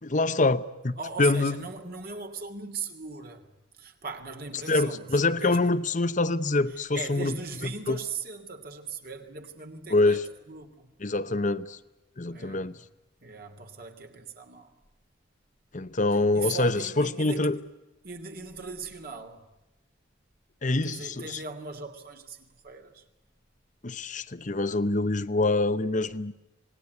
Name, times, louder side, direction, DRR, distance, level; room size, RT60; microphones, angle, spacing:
voice 1, 0.0-1.6 4.7-7.3 7.9-8.0 9.9-10.2 11.0-11.8 12.2-12.8 15.7-17.6 20.6-21.4 23.8-26.3, left 2 dB, 40° left, 0.9 m, -25 dB
voice 2, 1.0-3.5 3.7-5.7 6.7-10.9 12.3-12.8 13.2-14.7 16.3-17.5 18.0-19.4 20.8-23.0, right 4 dB, 50° right, 2.9 m, -39 dB
27.0 x 20.0 x 9.5 m
head